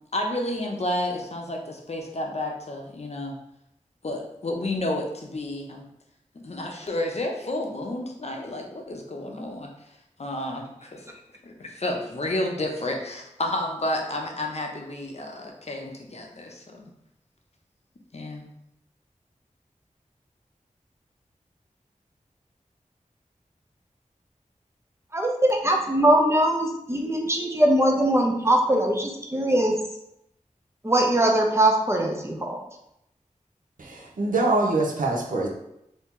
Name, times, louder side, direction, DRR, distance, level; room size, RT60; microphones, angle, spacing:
voice 1, 0.1-3.4 4.0-5.8 6.3-9.7 10.2-16.9 18.1-18.5, left 1 dB, 55° left, 1 dB, 0.6 m, -31 dB
voice 2, 25.1-29.7 30.8-32.6, right 1 dB, 20° right, 1 dB, 0.6 m, -21 dB
voice 3, 33.8-35.5, right 2 dB, 90° right, -1 dB, 0.6 m, -24 dB
2.9 x 2.7 x 3.6 m, 0.80 s
wide cardioid pair, 65°, 13 cm